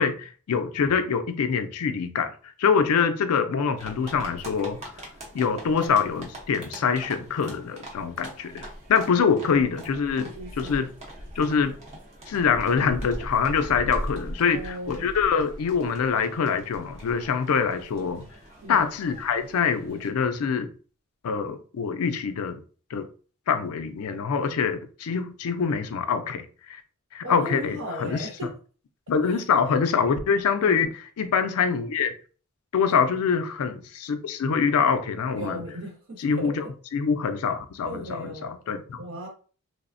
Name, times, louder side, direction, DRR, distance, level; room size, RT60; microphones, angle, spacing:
voice 1, 0.0-2.3 2.6-4.9 5.3-10.3 10.6-10.9 11.4-11.7 12.3-18.3 18.7-20.7 21.2-22.6 22.9-23.1 23.5-26.8 27.1-28.5 29.1-32.1 32.7-35.6 36.2-36.6 36.9-39.0, left 6 dB, 70° left, 0.4 m, -25 dB
sound 1, 3.8-20.1, equal, 30° right, 0.7 m, -41 dB
voice 2, 10.2-10.8 14.4-15.1 18.6-18.8 27.2-28.5 29.3-29.4 30.5-30.9 32.9-33.0 35.4-36.7 37.8-38.6 39.0-39.3, equal, 60° right, 0.9 m, -37 dB
3.2 x 2.0 x 2.5 m
head